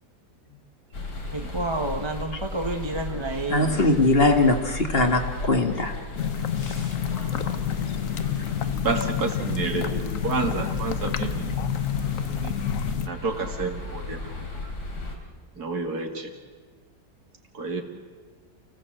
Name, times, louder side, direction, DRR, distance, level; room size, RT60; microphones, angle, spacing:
sound 1, 0.9-15.2, left 2 dB, 75° left, 3.6 m, -35 dB
voice 1, 1.3-3.8, right 2 dB, 20° right, 3 dB, 0.9 m, -30 dB
voice 2, 3.5-6.0 6.6-6.9, left 2 dB, 35° left, 4 dB, 2.0 m, -21 dB
sound 2, 6.2-13.1, left 10 dB, 55° left, 1.2 m, -29 dB
voice 3, 8.8-11.5 12.3-12.5 13.1-14.7 15.6-16.3 17.5-17.8, right 4 dB, 65° right, 4 dB, 2.7 m, -30 dB
29.0 x 17.0 x 7.8 m, 1.5 s
omnidirectional pair, 1.8 m